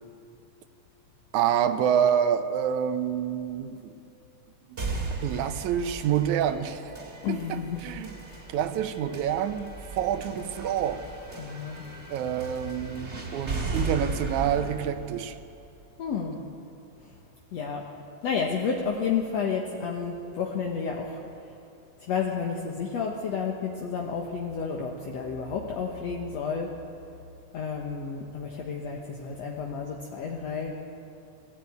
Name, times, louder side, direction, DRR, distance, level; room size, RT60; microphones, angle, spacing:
voice 1, 1.3-3.9 4.7-4.8 5.2-6.8 7.3-8.2 8.5-11.0 12.1-15.4, right 9 dB, 75° right, 10 dB, 2.2 m, -27 dB
sound 1, 4.8-16.7, right 3 dB, 25° right, 2.2 m, -37 dB
voice 2, 7.2-7.8 8.2-8.4 11.4-11.8 16.0-16.4 17.5-17.9 18.2-21.2 22.1-26.7 27.5-30.8, left 6 dB, 65° left, 0 dB, 2.3 m, -31 dB
21.5 x 14.0 x 9.4 m, 2.6 s
omnidirectional pair, 3.6 m